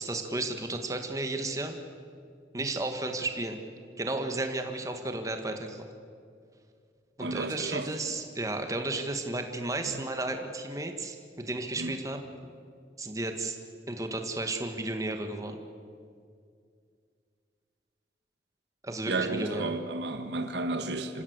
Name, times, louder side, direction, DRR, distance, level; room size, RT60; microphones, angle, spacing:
voice 1, 0.0-1.8 2.5-3.6 4.0-5.8 7.2-12.2 13.0-13.6 13.9-15.6 18.8-19.7, right 2 dB, 20° right, 5 dB, 1.5 m, -33 dB
voice 2, 7.2-7.9 9.8-10.0 11.8-12.0 19.1-21.2, right 2 dB, 75° right, 8 dB, 1.4 m, -33 dB
26.5 x 15.5 x 8.1 m, 2.3 s
head